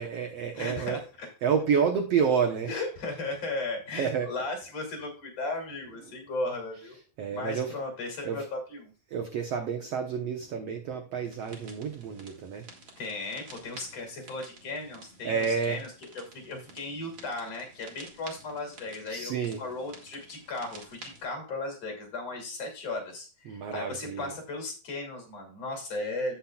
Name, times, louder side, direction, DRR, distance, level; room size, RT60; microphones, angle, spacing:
voice 1, 0.0-2.8 3.9-4.3 5.9-6.1 6.8-7.8 8.2-8.5 9.1-12.6 15.2-15.8 19.0-19.6 23.4-24.4, right 6 dB, 70° right, 3 dB, 1.5 m, -30 dB
voice 2, 0.5-1.3 2.7-6.9 7.3-8.9 13.0-26.4, left 2 dB, 45° left, 2 dB, 3.5 m, -36 dB
sound 1, 11.2-21.2, right 3 dB, 40° right, 2.5 m, -51 dB
16.5 x 5.7 x 2.3 m, 0.35 s
omnidirectional pair, 4.1 m